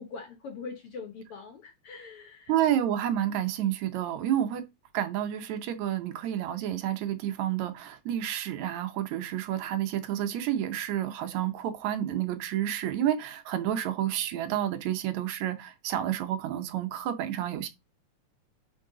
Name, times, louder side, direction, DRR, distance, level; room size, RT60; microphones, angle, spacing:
voice 1, 0.0-2.6, left 4 dB, 65° left, 1.5 m, -42 dB
voice 2, 2.5-4.6 4.9-17.7, right 11 dB, 75° right, 2.0 m, -30 dB
6.6 x 5.4 x 3.7 m
omnidirectional pair, 3.4 m